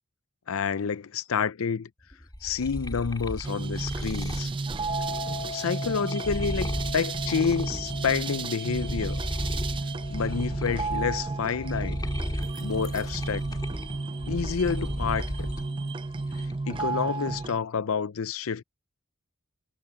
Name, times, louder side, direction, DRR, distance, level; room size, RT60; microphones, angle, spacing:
voice 1, 0.5-1.9 2.4-4.5 5.5-9.2 10.1-12.0 12.6-13.4 14.3-15.5 16.7-18.6, left 6 dB, 70° left, 0.6 m, -29 dB
sound 1, 2.1-8.3 8.7-15.7 16.1-16.7, equal, 20° left, 3.3 m, -36 dB
sound 2, 3.4-17.6, right 3 dB, 25° right, 0.4 m, -33 dB
sound 3, 4.9-15.8, left 3 dB, 35° left, 4.4 m, -43 dB
head